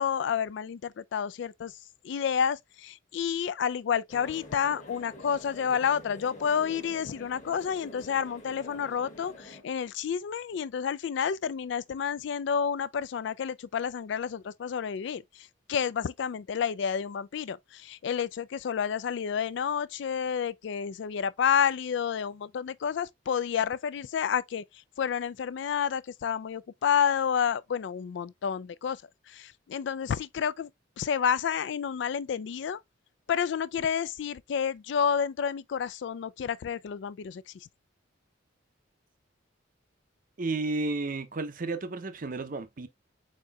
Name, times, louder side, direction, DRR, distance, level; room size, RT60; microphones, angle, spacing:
voice 1, 0.0-1.7 2.0-24.6 25.0-29.0 29.3-30.7 31.0-32.8 33.3-37.5, left 7 dB, 65° left, 0.3 m, -30 dB
sound 1, 4.1-9.6, left 1 dB, 40° left, 1.2 m, -47 dB
voice 2, 40.4-42.9, right 3 dB, 45° right, 0.6 m, -32 dB
4.8 x 4.3 x 2.3 m
head